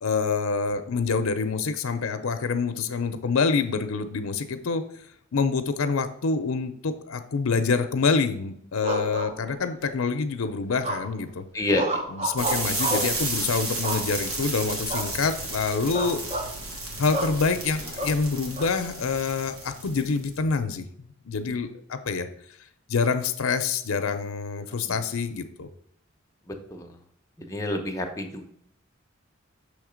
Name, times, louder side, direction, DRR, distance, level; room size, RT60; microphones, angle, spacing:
voice 1, 0.0-4.8 5.3-11.4 12.1-16.2 17.0-20.9 21.3-22.3 22.9-25.7, left 4 dB, 80° left, 9 dB, 0.6 m, -26 dB
sound 1, 8.8-9.9 10.8-11.3 11.7-13.2 13.8-14.4 14.9-15.1 15.4-15.6 15.9-16.5 17.1-17.4 18.0-18.7, right 1 dB, 30° right, 0.9 m, -31 dB
voice 2, 11.5-12.0 24.6-25.0 26.5-27.0 27.4-28.5, left 1 dB, 15° left, 3 dB, 0.8 m, -29 dB
sound 2, 12.4-20.3, right 2 dB, 90° right, 1.6 m, -32 dB
6.4 x 3.2 x 5.0 m, 0.68 s
head